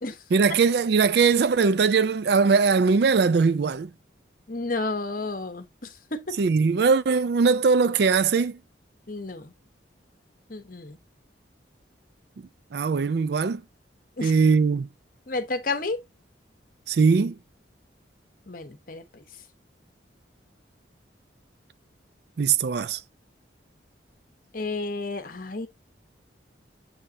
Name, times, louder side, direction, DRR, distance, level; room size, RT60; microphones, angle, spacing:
voice 1, 0.3-3.9 6.4-8.6 12.7-13.6 14.2-14.9 16.9-17.3 22.4-23.0, right 5 dB, 55° right, 0.4 m, -21 dB
voice 2, 4.5-6.4 9.1-9.5 10.5-11.0 14.2-14.4 15.3-16.0 18.5-19.2 24.5-25.7, left 3 dB, 45° left, 0.9 m, -31 dB
7.1 x 5.4 x 2.7 m
head